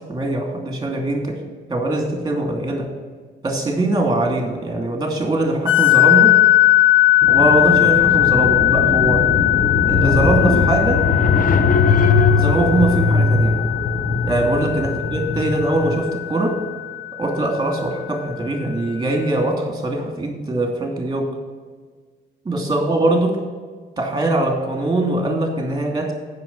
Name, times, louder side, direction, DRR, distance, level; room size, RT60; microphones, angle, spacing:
voice 1, 0.1-1.4 1.7-2.9 3.4-6.3 7.3-9.2 9.9-11.0 12.4-13.6 14.3-16.5 17.2-21.3 22.4-23.4 24.0-26.1, right 2 dB, 20° right, 1 dB, 2.6 m, -21 dB
sound 1, 5.7-17.9, left 14 dB, 80° left, 0.5 m, -19 dB
sound 2, 7.2-16.0, left 4 dB, 45° left, 0.8 m, -20 dB
7.5 x 6.4 x 7.3 m, 1.5 s
cardioid pair, 90°, 20 cm